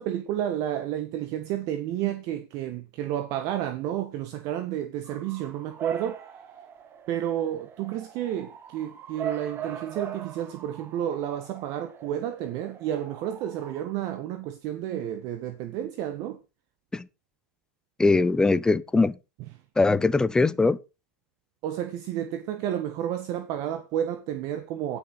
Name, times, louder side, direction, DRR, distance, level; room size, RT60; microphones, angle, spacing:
voice 1, 0.0-6.2 7.1-16.4 21.6-25.0, right 11 dB, 45° right, 1.5 m, -31 dB
Bark / Motor vehicle (road) / Siren, 5.1-13.8, right 8 dB, 25° right, 1.8 m, -40 dB
voice 2, 18.0-19.2 19.8-20.8, left 3 dB, 10° left, 0.6 m, -21 dB
17.5 x 6.2 x 4.2 m
hypercardioid pair, 130°, 9 cm